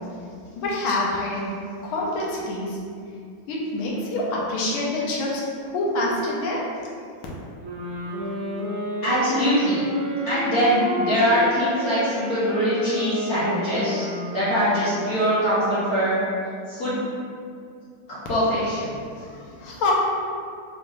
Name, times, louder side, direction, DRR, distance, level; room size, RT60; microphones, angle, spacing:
voice 1, 0.5-1.5 1.8-2.8 3.5-6.9 19.2-19.9, left 2 dB, 80° left, -4 dB, 1.6 m, -26 dB
sound 1, 7.6-15.3, left 1 dB, 65° right, 0.8 m, -31 dB
voice 2, 9.0-9.9 10.2-16.2 16.7-17.0 18.1-19.0, equal, 55° left, -12 dB, 1.1 m, -23 dB
3.8 x 3.3 x 2.7 m, 2.3 s
omnidirectional pair, 2.3 m